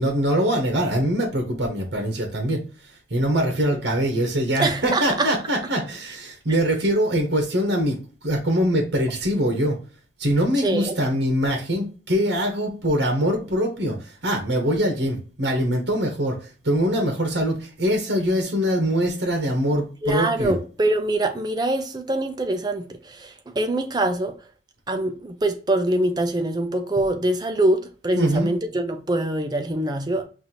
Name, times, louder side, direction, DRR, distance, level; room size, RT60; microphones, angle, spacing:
voice 1, 0.0-2.6 3.1-8.0 8.2-9.8 10.2-20.6 28.2-28.5, equal, 70° right, 1.1 m, -23 dB
voice 2, 4.6-5.3 10.6-10.9 20.0-24.4 24.9-30.2, right 1 dB, 25° right, 0.5 m, -24 dB
5.8 x 2.6 x 2.8 m
head